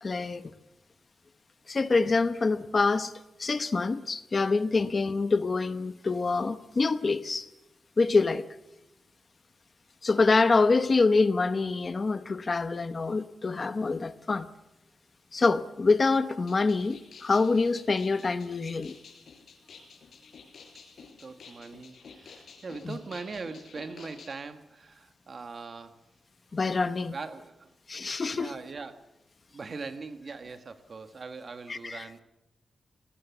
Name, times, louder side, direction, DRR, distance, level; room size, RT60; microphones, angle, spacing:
voice 1, 0.0-0.4 1.7-3.1 3.4-7.5 8.0-8.4 10.0-14.5 15.3-18.9 22.9-23.0 26.5-27.1 27.9-28.5 31.7-32.0, left 3 dB, 30° left, 0.9 m, -26 dB
sound 1, 16.4-24.3, left 5 dB, 65° left, 4.7 m, -51 dB
voice 2, 21.2-26.0 27.1-27.7 28.3-29.1 29.5-32.2, right 4 dB, 40° right, 1.5 m, -41 dB
25.5 x 19.0 x 7.2 m
wide cardioid pair, 170°, 0 cm